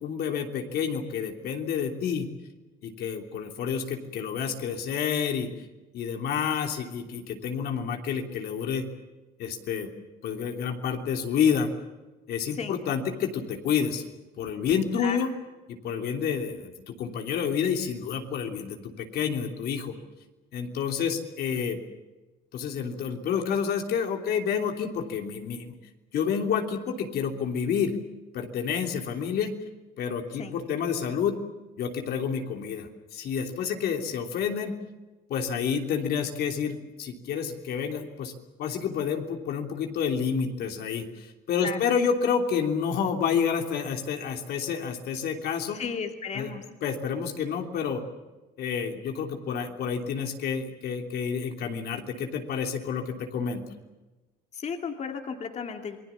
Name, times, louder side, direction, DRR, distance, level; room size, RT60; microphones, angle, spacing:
voice 1, 0.0-2.3 2.8-5.5 5.9-8.8 9.4-9.9 10.2-11.7 12.3-14.0 14.4-15.3 15.7-20.0 20.5-21.8 22.5-25.8 26.1-28.0 28.3-29.5 30.0-31.4 31.8-34.7 35.3-38.3 38.6-45.8 46.3-46.5 46.8-48.0 48.6-53.6, left 7 dB, 70° left, 3 dB, 3.2 m, -29 dB
voice 2, 45.7-46.6 54.5-56.0, left 6 dB, 40° left, 4 dB, 2.5 m, -34 dB
28.0 x 20.5 x 7.2 m, 1.1 s
cardioid pair, 110°, 17 cm